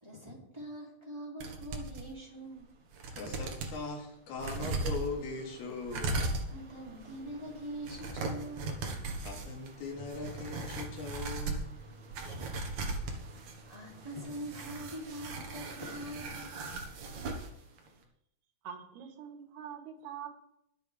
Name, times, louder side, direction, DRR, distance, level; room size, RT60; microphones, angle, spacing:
voice 1, 0.0-2.7 6.5-8.8 13.7-16.5, right 1 dB, 10° right, -3 dB, 2.9 m, -43 dB
sound 1, 1.4-2.0 2.6-2.7 2.9-3.8 4.4-17.5 17.8-17.9, right 2 dB, 55° right, 2.7 m, -38 dB
voice 2, 3.2-6.2 9.2-11.7 12.2-12.4 13.0-13.2, left 3 dB, 80° left, 1 dB, 4.3 m, -40 dB
Bass guitar, 10.0-16.2, right 3 dB, 40° right, 2.7 m, -55 dB
voice 3, 18.6-20.3, right 8 dB, 85° right, 4 dB, 3.7 m, -44 dB
22.5 x 8.2 x 3.6 m, 0.76 s
omnidirectional pair, 4.5 m